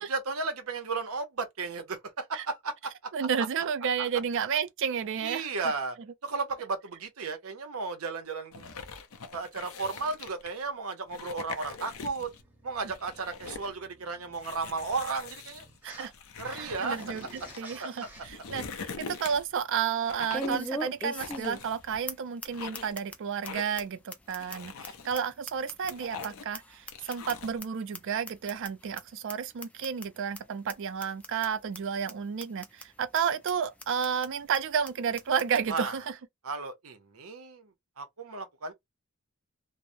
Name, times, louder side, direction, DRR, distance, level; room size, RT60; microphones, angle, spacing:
voice 1, 0.0-3.1 4.0-4.1 5.2-6.0 6.2-8.7 9.3-12.3 12.6-15.6 16.4-17.0 17.8-18.1 35.7-35.9 36.4-37.7 38.0-38.7, right 4 dB, 85° right, 0.7 m, -34 dB
voice 2, 3.1-5.5 15.8-16.1 16.8-36.1, right 7 dB, 60° right, 0.4 m, -31 dB
sound 1, 8.5-10.6 11.1-12.4 12.8-13.7 14.3-17.6 18.1-19.6 20.0-20.7 21.2-22.1 22.4-23.0 23.4-23.9 24.3-25.1 25.6-26.6 26.9-27.6, left 5 dB, 75° left, 0.6 m, -43 dB
sound 2, 12.3-16.1 16.4-18.2, right 1 dB, 10° right, 0.8 m, -51 dB
sound 3, 18.0-18.1 18.5-18.6 20.3-21.8 22.1-22.2 22.4-22.5 22.7-23.2 23.4-23.5 23.8-23.9 24.1-26.3 26.5-27.6 27.9-28.0 28.3-28.7 29.0-29.1 29.3-29.4 29.6-30.1 30.3-30.4 30.7-30.8 31.0-31.5 31.7-31.8 32.1-32.2 32.4-32.8 33.1-33.2 33.5-33.6 33.8-34.3 34.5-34.6 34.8-34.9 35.2-35.6, left 1 dB, 5° left, 0.4 m, -38 dB
3.0 x 2.0 x 2.6 m
head